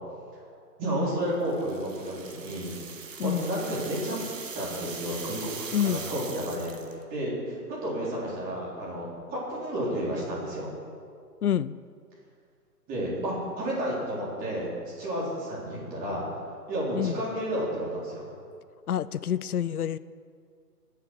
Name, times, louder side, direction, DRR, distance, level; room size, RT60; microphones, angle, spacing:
voice 1, 0.8-4.2 4.6-5.5 5.8-10.7 12.9-14.7 15.0-16.2 16.7-18.3, equal, 20° right, -6 dB, 3.9 m, -31 dB
sound 1, 1.5-7.0, right 6 dB, 50° right, 1.4 m, -41 dB
voice 2, 5.7-6.0 11.4-11.8 16.9-17.2 18.9-20.0, left 10 dB, 65° left, 17 dB, 0.6 m, -27 dB
20.0 x 7.1 x 6.2 m, 2.2 s
figure-of-eight pair, 130°, 49 cm